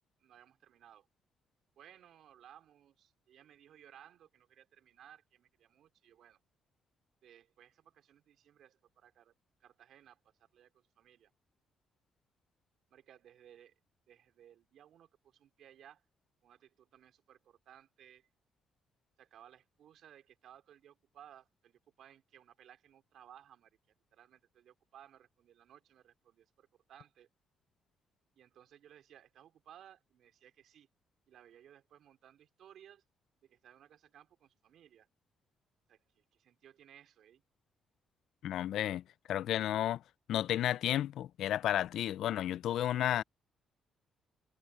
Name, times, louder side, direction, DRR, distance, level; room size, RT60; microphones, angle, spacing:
voice 1, 0.2-1.1 1.8-6.4 7.2-9.3 9.6-11.3 12.9-13.7 14.1-16.0 16.4-18.3 19.2-23.8 24.1-27.3 28.3-30.9 31.3-33.0 33.4-35.1 35.9-37.4, right 10 dB, 70° right, 4.1 m, -60 dB
voice 2, 38.4-39.0 39.3-40.0 40.3-43.2, left 12 dB, 75° left, 0.3 m, -32 dB
cardioid pair, 90°, 0 cm